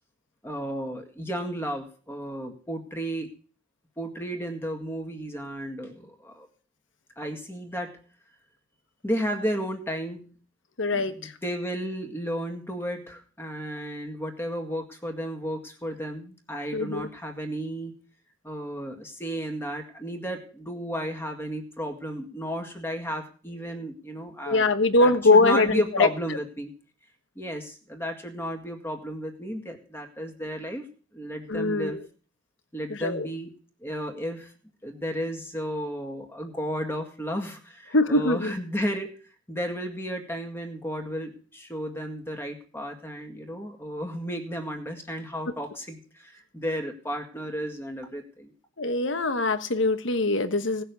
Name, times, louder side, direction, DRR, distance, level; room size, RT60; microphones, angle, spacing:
voice 1, 0.4-3.3 4.0-6.5 7.2-7.9 9.0-10.3 10.9-18.0 18.4-24.7 25.0-26.7 27.4-30.8 31.1-32.0 32.7-33.5 33.8-34.5 34.8-39.1 39.5-48.5, equal, 10° left, 4 dB, 2.0 m, -33 dB
voice 2, 10.8-11.3 16.7-17.1 24.5-26.1 31.5-32.0 32.9-33.3 37.9-38.5 48.8-50.8, left 2 dB, 65° left, 11 dB, 1.3 m, -22 dB
17.5 x 6.7 x 8.2 m, 0.40 s
head